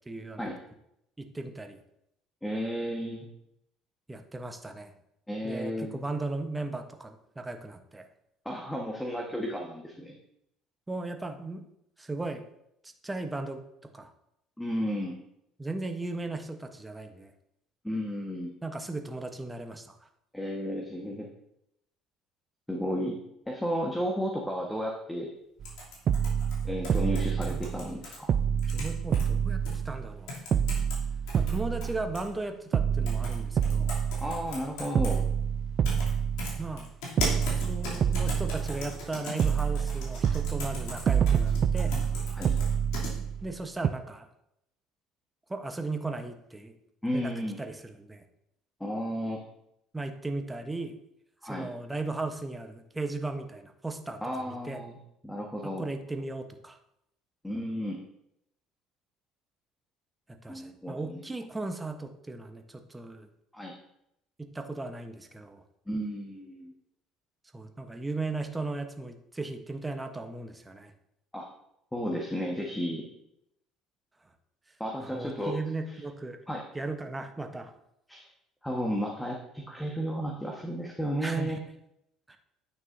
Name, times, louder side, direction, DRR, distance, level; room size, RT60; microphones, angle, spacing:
voice 1, 0.1-0.4 1.2-1.8 4.1-4.9 5.4-8.0 10.9-11.6 12.0-12.4 13.0-13.6 13.9-14.1 15.6-17.3 18.6-20.0 27.4-27.6 28.7-30.3 31.3-33.9 36.6-36.9 37.5-41.9 43.4-44.3 45.5-46.7 47.1-47.3 47.6-48.2 49.9-51.0 51.4-54.2 54.6-54.8 55.8-56.8 60.3-63.3 64.4-65.6 67.5-70.9 75.0-76.4 76.7-77.7 81.2-81.6 82.3-82.4, right 2 dB, 15° right, 6 dB, 1.0 m, -36 dB
voice 2, 2.4-3.2 5.3-6.0 8.4-10.2 14.6-15.2 17.8-18.5 20.3-21.3 22.7-23.2 23.5-25.3 26.6-28.3 34.2-35.2 42.3-42.5 47.0-47.6 48.8-49.4 51.4-51.7 54.2-55.0 55.2-55.8 57.4-58.0 60.5-61.3 63.5-63.7 65.9-66.7 71.3-71.4 71.9-73.1 74.8-75.6 76.5-76.6 78.1-78.3 78.6-81.6, equal, 5° left, 0 dB, 1.4 m, -33 dB
sound 1, 25.6-28.2 28.6-29.2 29.7-29.8 30.3-31.0 31.3-32.3 33.1-33.4 33.6-35.2 35.8-36.1 36.4-43.1, left 2 dB, 70° left, 2.9 m, -38 dB
sound 2, 25.6-25.7 26.1-28.0 28.3-30.2 30.5-32.4 32.7-34.6 34.9-36.8 37.2-39.1 39.4-43.5 43.8-43.9, right 7 dB, 50° right, 0.4 m, -28 dB
9.4 x 6.1 x 2.7 m, 0.78 s
hypercardioid pair, 65°, 0 cm